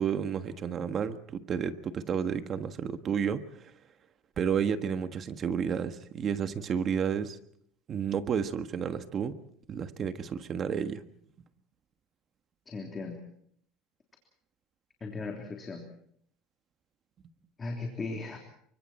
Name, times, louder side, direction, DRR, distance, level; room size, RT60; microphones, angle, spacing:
voice 1, 0.0-3.7 4.4-7.4 7.9-9.3 9.7-11.0, right 7 dB, 30° right, 9 dB, 1.5 m, -31 dB
voice 2, 12.7-13.2 15.0-15.9 17.6-18.4, left 3 dB, 20° left, 2 dB, 3.3 m, -37 dB
29.5 x 25.0 x 4.4 m, 0.66 s
cardioid pair, 150°, 0 cm